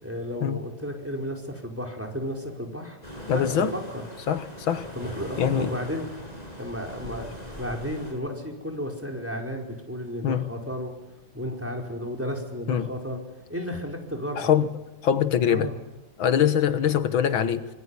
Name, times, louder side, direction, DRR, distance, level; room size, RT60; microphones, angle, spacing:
voice 1, 0.0-3.0 3.3-4.0 4.9-6.1 6.6-7.3 7.6-10.9 11.3-13.2 13.5-14.5 15.5-15.8 16.8-16.9, equal, 5° right, 2 dB, 4.7 m, -33 dB
sound 1, 3.0-8.1, equal, 20° left, 7.7 m, -40 dB
voice 2, 3.3-3.7 4.3-4.9 5.4-5.7 10.2-10.5 12.7-12.9 14.4-14.7 15.0-15.7 16.2-17.7, left 9 dB, 85° left, 11 dB, 2.1 m, -23 dB
25.0 x 24.0 x 9.8 m, 1.0 s
omnidirectional pair, 2.1 m